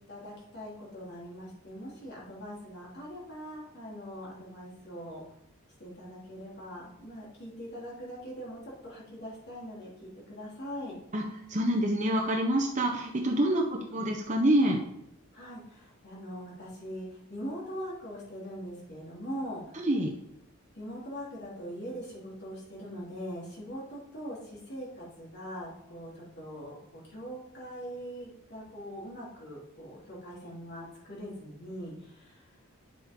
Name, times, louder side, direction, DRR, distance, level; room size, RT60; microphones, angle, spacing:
voice 1, 0.1-5.2 5.8-11.0 13.4-13.7 15.3-19.6 20.7-32.4, equal, 50° left, -5 dB, 3.5 m, -42 dB
voice 2, 11.1-14.8 19.8-20.1, right 1 dB, 35° right, 1 dB, 1.0 m, -27 dB
10.5 x 7.4 x 3.8 m, 0.82 s
head